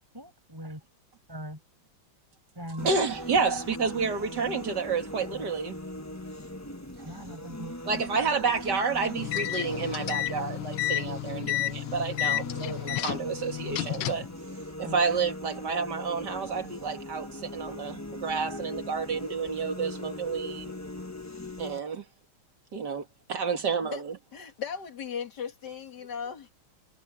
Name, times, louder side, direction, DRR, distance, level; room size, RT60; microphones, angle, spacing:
voice 1, 0.1-0.8 1.3-1.6 2.5-2.9 7.0-8.0 14.8-15.0, equal, 10° right, 6.4 m, -40 dB
sound 1, 2.8-21.8, left 1 dB, 10° left, 0.7 m, -40 dB
voice 2, 2.8-5.8 7.0-7.1 7.9-14.3 14.8-20.7 21.6-22.0 22.7-24.2, right 5 dB, 55° right, 2.7 m, -30 dB
sound 2, 9.2-14.3, left 15 dB, 80° left, 1.6 m, -31 dB
voice 3, 24.3-26.5, left 7 dB, 55° left, 2.6 m, -37 dB
omnidirectional pair, 2.2 m